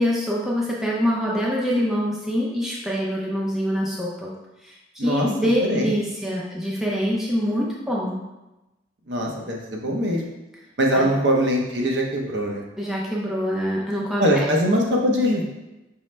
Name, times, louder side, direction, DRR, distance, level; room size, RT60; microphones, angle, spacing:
voice 1, 0.0-4.3 4.6-8.2 10.9-11.1 12.8-14.5, equal, ahead, -5 dB, 0.5 m, -25 dB
voice 2, 5.0-5.3 5.6-5.9 9.1-10.3 10.8-12.6 14.2-15.4, equal, 65° right, -1 dB, 0.7 m, -22 dB
5.5 x 2.1 x 3.1 m, 0.99 s
head